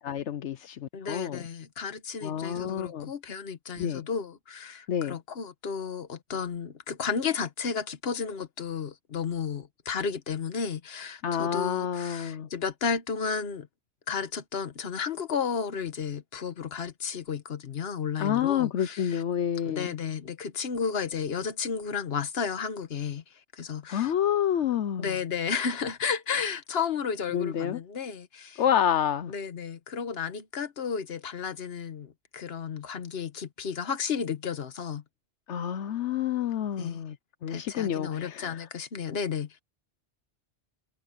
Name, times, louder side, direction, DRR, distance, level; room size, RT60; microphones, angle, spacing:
voice 1, 0.0-1.4 2.2-3.1 3.8-4.1 4.9-5.2 11.2-12.5 18.2-19.9 23.9-25.1 27.3-27.8 28.6-29.3 35.5-37.2 37.4-38.6, left 9 dB, 85° left, 1.0 m, -28 dB
voice 2, 0.9-13.7 14.1-19.2 19.6-23.2 23.5-24.1 25.0-28.6 29.3-35.0 36.8-37.0 37.5-39.6, left 6 dB, 60° left, 1.4 m, -33 dB
omnidirectional pair, 1.2 m